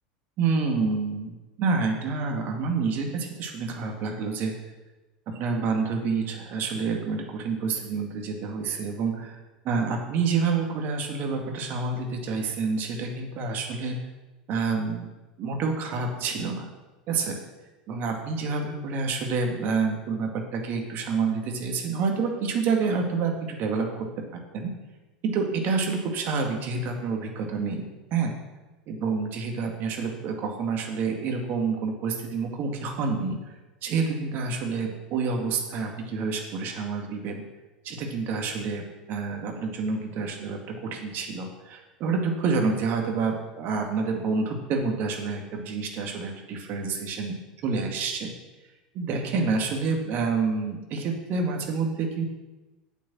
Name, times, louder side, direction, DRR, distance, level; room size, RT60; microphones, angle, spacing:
voice 1, 0.4-4.5 5.3-9.4 9.6-14.0 14.5-15.1 15.4-16.7 17.1-17.4 17.9-23.9 24.2-24.3 24.5-24.7 25.2-28.3 28.9-33.5 33.8-37.4 37.8-38.8 39.1-47.4 47.6-48.3 48.9-52.2, right 4 dB, 45° right, 2 dB, 2.2 m, -28 dB
8.5 x 6.5 x 7.6 m, 1.1 s
hypercardioid pair, 80°, 5 cm